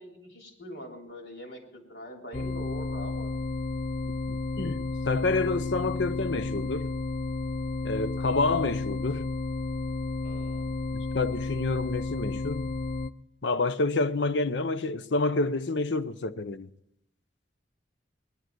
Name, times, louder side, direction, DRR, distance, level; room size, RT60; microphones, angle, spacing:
voice 1, 0.0-3.4 10.2-10.7, equal, 70° left, 3.4 m, -43 dB
sound 1, 2.3-13.1, left 3 dB, 40° left, 0.5 m, -32 dB
voice 2, 4.3-6.9 7.8-9.3 11.1-12.7 13.4-16.7, left 3 dB, 90° left, 0.7 m, -28 dB
19.5 x 11.5 x 4.6 m
head